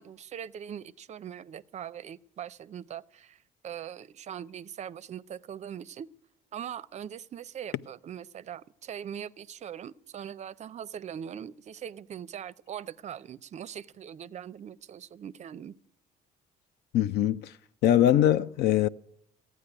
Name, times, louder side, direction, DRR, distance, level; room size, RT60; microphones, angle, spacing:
voice 1, 0.0-6.1 6.5-15.7, right 9 dB, 45° right, 0.5 m, -41 dB
voice 2, 16.9-17.5 17.8-18.9, left 11 dB, 75° left, 0.5 m, -22 dB
15.0 x 9.4 x 9.8 m
cardioid pair, 110°, 17 cm